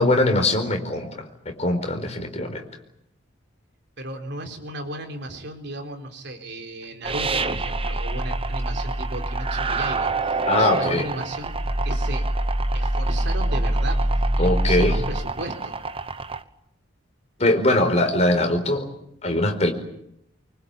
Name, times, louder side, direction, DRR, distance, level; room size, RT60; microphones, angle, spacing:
voice 1, 0.0-2.6 10.5-11.1 14.4-14.9 17.4-18.9 19.2-19.7, left 1 dB, 35° left, 5 dB, 4.7 m, -21 dB
voice 2, 4.0-11.6 11.8-12.2 12.7-15.7, right 1 dB, 60° right, 5 dB, 4.0 m, -35 dB
sound 1, 7.0-16.4, right 2 dB, 30° right, 1.1 m, -25 dB
25.0 x 24.5 x 8.6 m, 0.76 s
head